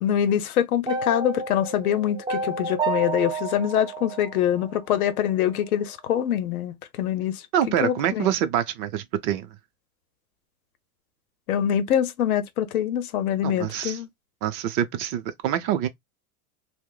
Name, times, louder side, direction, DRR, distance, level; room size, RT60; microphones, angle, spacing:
voice 1, 0.0-7.4 7.8-8.3 11.5-14.1, left 10 dB, 85° left, 0.7 m, -24 dB
sound 1, 0.9-5.0, right 4 dB, 15° right, 0.3 m, -30 dB
voice 2, 7.5-9.5 13.4-14.0 14.4-15.9, right 10 dB, 45° right, 0.6 m, -25 dB
2.5 x 2.1 x 3.8 m
hypercardioid pair, 110°, 43 cm